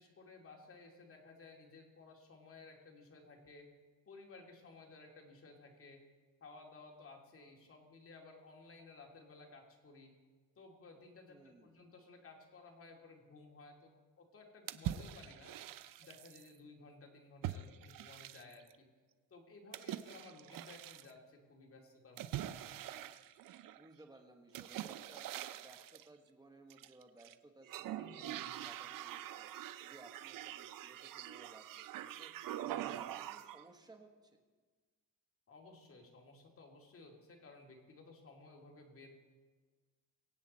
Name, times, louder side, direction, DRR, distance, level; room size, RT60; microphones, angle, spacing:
voice 1, 0.0-3.7 4.1-6.0 6.4-10.1 10.6-15.5 16.0-18.9 19.3-22.6 27.9-28.6 32.6-33.0 35.5-39.2, left 3 dB, 35° left, 1 dB, 2.4 m, -57 dB
voice 2, 11.3-11.8 23.7-34.4, right 2 dB, 10° right, 4 dB, 1.4 m, -60 dB
sound 1, 14.7-16.5 17.4-18.7 19.7-21.1 22.2-23.9 24.5-26.1 26.7-27.3 27.6-33.6, right 12 dB, 60° right, 0.7 m, -44 dB
23.5 x 8.5 x 4.2 m, 1.4 s
cardioid pair, 130°, 37 cm